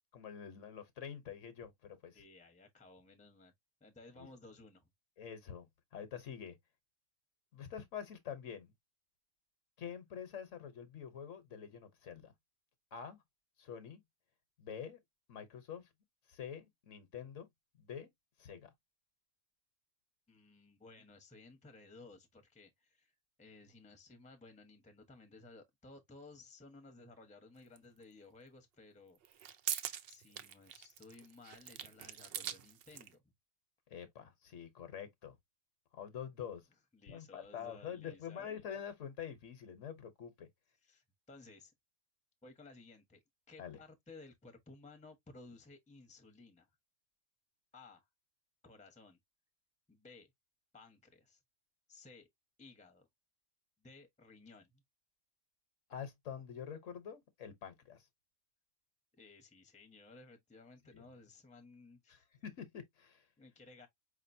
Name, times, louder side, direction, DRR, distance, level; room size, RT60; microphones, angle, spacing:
voice 1, 0.1-2.2 4.2-4.3 5.2-5.7 5.9-6.6 7.5-8.7 9.8-12.3 12.9-13.2 13.6-14.0 14.6-15.0 15.3-15.8 16.3-17.5 17.8-18.1 18.4-18.7 33.9-35.4 35.9-36.6 37.1-40.5 43.6-43.8 55.9-58.0 60.9-61.0 62.1-62.2 62.4-63.2, left 8 dB, 65° left, 1.2 m, -46 dB
voice 2, 2.1-3.5 3.8-4.9 20.3-29.4 30.1-33.2 36.9-38.6 40.8-41.7 42.4-46.7 47.7-48.1 48.6-49.2 49.9-50.3 50.7-51.4 51.9-52.3 52.6-53.1 53.8-54.8 59.2-62.3 63.4-63.9, left 3 dB, 5° left, 0.8 m, -57 dB
sound 1, 27.8-27.9 29.2-33.1, right 9 dB, 60° right, 0.6 m, -43 dB
5.0 x 2.9 x 2.6 m
omnidirectional pair, 1.4 m